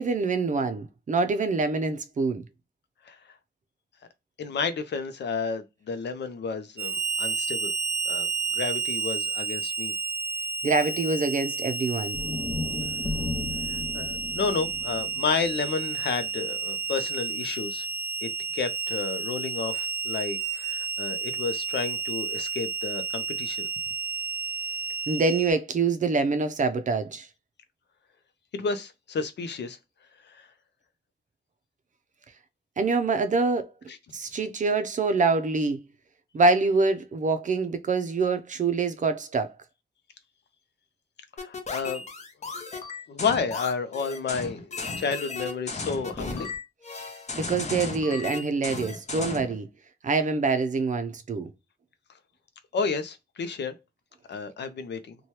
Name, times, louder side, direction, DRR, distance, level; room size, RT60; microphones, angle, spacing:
voice 1, 0.0-2.4 10.6-12.2 25.1-27.3 32.8-33.7 34.1-35.8 36.3-39.5 47.4-49.7 50.0-51.5, right 3 dB, 45° right, 0.5 m, -25 dB
voice 2, 4.4-7.7 8.1-8.3 8.5-9.9 13.7-17.9 18.2-23.7 28.5-29.8 30.3-30.5 33.9-34.0 41.4-42.0 42.4-42.5 43.1-46.5 52.7-53.7 54.3-55.2, left 5 dB, 85° left, 0.5 m, -31 dB
Harmonica, 6.8-25.5, right 4 dB, 15° right, 0.8 m, -31 dB
sound 1, 12.1-16.4, left 3 dB, 20° left, 0.3 m, -35 dB
sound 2, 41.4-49.5, left 4 dB, 40° left, 0.7 m, -35 dB
2.8 x 2.2 x 3.0 m
wide cardioid pair, 145°, 17 cm